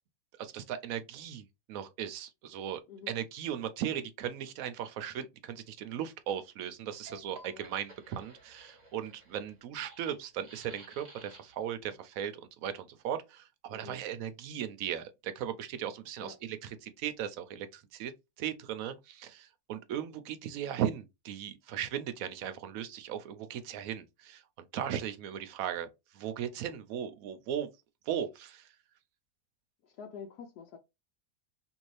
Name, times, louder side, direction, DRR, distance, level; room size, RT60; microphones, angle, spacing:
voice 1, 0.4-2.8 3.1-12.3 12.6-18.1 18.4-27.7 28.1-28.7, right 9 dB, 70° right, 0.9 m, -37 dB
sound 1, 6.9-11.7, right 1 dB, 30° right, 1.1 m, -54 dB
voice 2, 29.8-30.8, left 6 dB, 90° left, 1.2 m, -47 dB
2.9 x 2.6 x 3.1 m
omnidirectional pair, 1.6 m